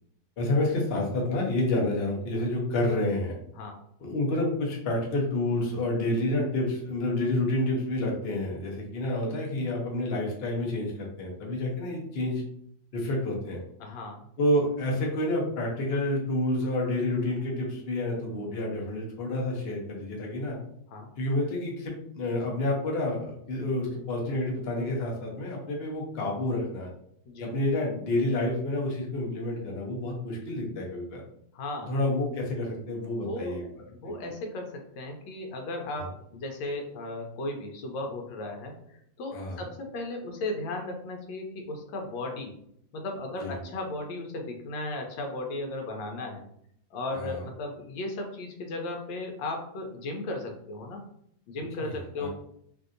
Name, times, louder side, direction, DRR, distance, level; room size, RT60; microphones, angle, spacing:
voice 1, 0.4-3.3 4.0-12.4 12.9-13.6 14.4-20.6 21.2-26.9 27.4-31.2 31.9-33.6 34.0-34.1 39.3-39.6 43.4-43.6 47.2-47.4 51.8-52.3, left 1 dB, 60° left, -1 dB, 0.6 m, -29 dB
voice 2, 13.8-14.3 20.9-21.1 27.3-27.5 31.5-31.9 33.2-33.6 33.9-42.6 42.9-46.4 46.9-51.0 51.5-52.3, left 2 dB, 85° left, 2 dB, 1.3 m, -36 dB
3.2 x 2.6 x 2.5 m, 0.70 s
omnidirectional pair, 2.0 m